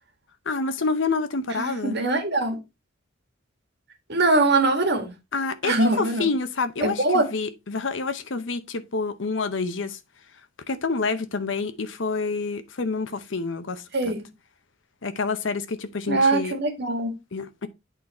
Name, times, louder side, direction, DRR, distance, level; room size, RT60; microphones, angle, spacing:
voice 1, 0.5-2.0 5.3-10.0 10.7-14.2 15.0-16.6 17.3-17.7, left 4 dB, 70° left, 0.8 m, -28 dB
voice 2, 1.6-2.6 4.1-5.1 5.6-6.3 6.8-7.3 13.9-14.2 16.1-17.1, right 2 dB, 60° right, 1.9 m, -22 dB
8.3 x 4.0 x 4.2 m
head